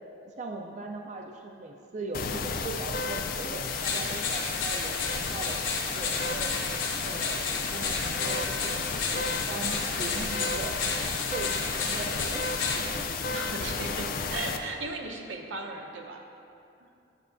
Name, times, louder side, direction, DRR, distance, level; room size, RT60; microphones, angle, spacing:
voice 1, 0.2-6.5 7.0-10.8 11.3-12.4 12.8-13.2, right 3 dB, 40° right, 2 dB, 0.4 m, -39 dB
sound 1, 2.1-14.6, left 4 dB, 50° left, 0.4 m, -33 dB
sound 2, 3.7-12.8, left 4 dB, 85° left, 1.4 m, -33 dB
voice 2, 13.3-16.2, right 3 dB, 80° right, 1 dB, 0.9 m, -36 dB
10.5 x 7.8 x 2.6 m, 2.6 s
head